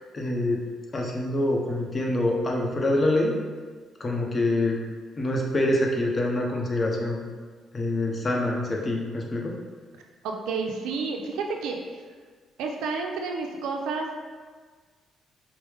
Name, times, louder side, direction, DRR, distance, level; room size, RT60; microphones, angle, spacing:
voice 1, 0.1-0.6 0.9-3.3 4.0-4.8 5.2-7.2 7.7-9.6, left 1 dB, 35° left, 0 dB, 0.7 m, -25 dB
voice 2, 10.2-12.0 12.6-14.2, right 4 dB, 90° right, 2 dB, 0.4 m, -30 dB
4.8 x 2.0 x 3.4 m, 1.5 s
cardioid pair, 90°, 0 cm